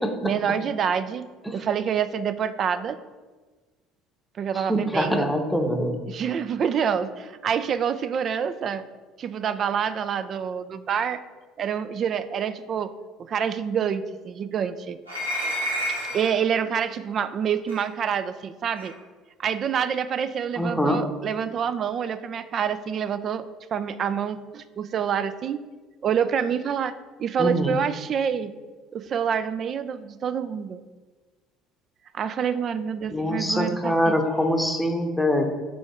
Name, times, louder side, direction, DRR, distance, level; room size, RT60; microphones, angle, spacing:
voice 1, 0.2-3.0 4.4-5.3 6.1-8.8 9.2-11.2 11.6-12.9 13.2-15.0 15.9-18.9 19.4-23.4 23.7-25.6 26.0-28.5 28.9-30.8 32.1-34.2, right 7 dB, 40° right, 13 dB, 0.3 m, -27 dB
voice 2, 4.5-6.0 20.6-21.0 27.4-27.8 33.1-35.5, equal, 5° left, 3 dB, 0.9 m, -24 dB
sound 1, 15.1-16.4 17.7-17.8 18.8-18.9, equal, 85° right, 1.1 m, -29 dB
5.1 x 4.5 x 4.8 m, 1.3 s
figure-of-eight pair, 60°, 0 cm